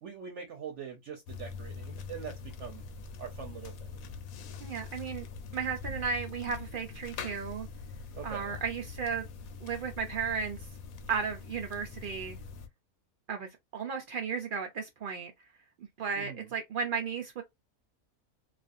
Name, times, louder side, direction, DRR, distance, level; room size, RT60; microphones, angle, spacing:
voice 1, 0.0-2.8 3.2-4.0 8.1-8.5 16.2-16.5, right 7 dB, 65° right, 0.9 m, -43 dB
sound 1, 1.3-12.7, left 4 dB, 80° left, 1.0 m, -43 dB
voice 2, 4.6-5.3 5.5-7.7 8.2-9.3 9.6-10.6 11.1-12.4 13.3-15.3 16.0-17.4, right 6 dB, 90° right, 0.4 m, -34 dB
2.5 x 2.4 x 2.4 m
omnidirectional pair, 1.5 m